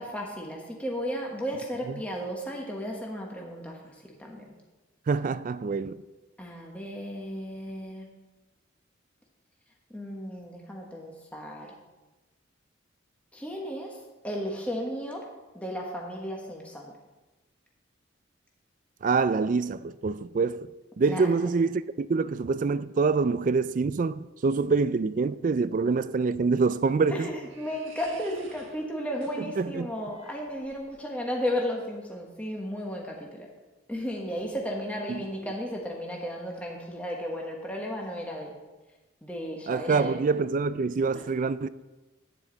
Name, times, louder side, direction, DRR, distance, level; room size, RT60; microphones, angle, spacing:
voice 1, 0.0-4.4 6.4-8.1 9.9-11.8 13.3-15.3 15.5-16.9 21.1-21.3 27.1-33.5 33.9-38.6 39.2-40.2, equal, 5° left, 1.1 m, -34 dB
voice 2, 5.1-6.0 19.0-27.3 29.6-29.9 35.1-35.2 39.7-41.7, right 4 dB, 40° right, 0.3 m, -26 dB
sound 1, 26.4-31.2, right 3 dB, 90° right, 1.4 m, -52 dB
11.5 x 9.4 x 3.9 m
head